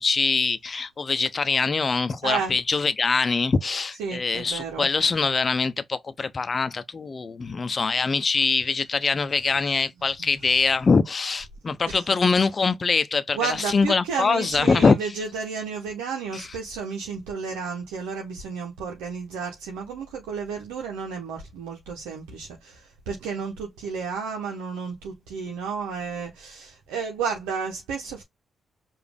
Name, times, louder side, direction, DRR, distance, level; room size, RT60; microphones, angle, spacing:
voice 1, 0.0-15.0 16.3-16.5, left 4 dB, 45° left, 0.7 m, -23 dB
voice 2, 4.0-4.9 10.2-10.3 11.9-12.0 13.3-28.2, right 5 dB, 85° right, 1.0 m, -32 dB
4.9 x 2.7 x 3.5 m
hypercardioid pair, 45°, 0 cm